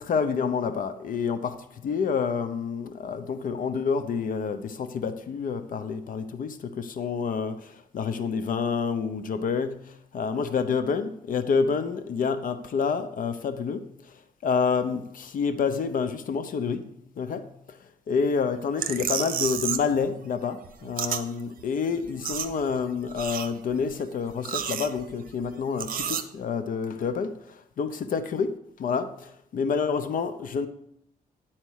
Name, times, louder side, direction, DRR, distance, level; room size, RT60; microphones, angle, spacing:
voice 1, 0.0-13.9 14.4-17.5 18.1-28.5 28.8-30.7, left 5 dB, 60° left, 0.7 m, -28 dB
sound 1, 18.8-20.0 20.2-21.2 21.6-21.7 21.9-22.8 23.1-23.8 24.3-25.3 25.8-26.2, right 8 dB, 65° right, 0.8 m, -31 dB
10.5 x 4.4 x 6.3 m
cardioid pair, 115°, 16 cm